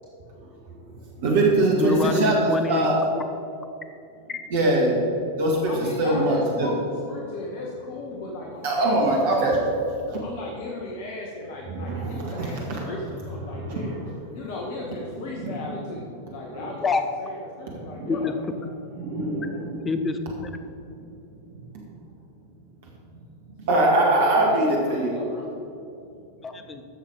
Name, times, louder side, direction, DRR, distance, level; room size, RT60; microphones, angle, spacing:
voice 1, 1.2-2.3 2.7-3.0 4.5-5.0 5.4-6.7 8.6-9.6 10.1-10.2 11.7-12.9 13.4-14.3 15.1-15.8 16.5-16.7 17.8-18.1 18.9-19.8 23.6-25.1, right 2 dB, 55° right, -2 dB, 1.9 m, -23 dB
voice 2, 1.8-2.9 4.3-4.4 16.8-17.0 18.1-18.7 19.8-20.5 26.4-26.8, left 4 dB, 20° left, 8 dB, 0.8 m, -26 dB
voice 3, 5.6-9.4 10.2-13.9 14.3-16.9 17.2-18.4 18.6-18.8 23.7-25.5, left 2 dB, 50° left, -2 dB, 1.3 m, -36 dB
14.0 x 6.7 x 4.9 m, 2.7 s
figure-of-eight pair, 90°, 0 cm